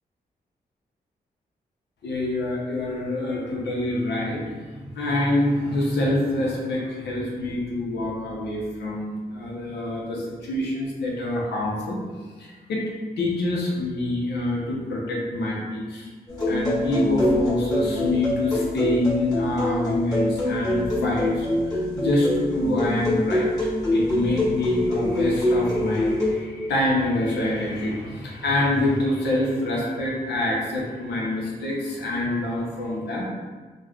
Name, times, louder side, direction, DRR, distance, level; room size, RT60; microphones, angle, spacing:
voice 1, 2.0-12.0 12.4-12.9 13.2-16.1 16.5-33.2, left 1 dB, 85° left, -4 dB, 0.7 m, -26 dB
sound 1, 16.3-26.3, left 1 dB, 20° left, 1.4 m, -24 dB
3.4 x 2.2 x 2.3 m, 1.4 s
cardioid pair, 55°, 17 cm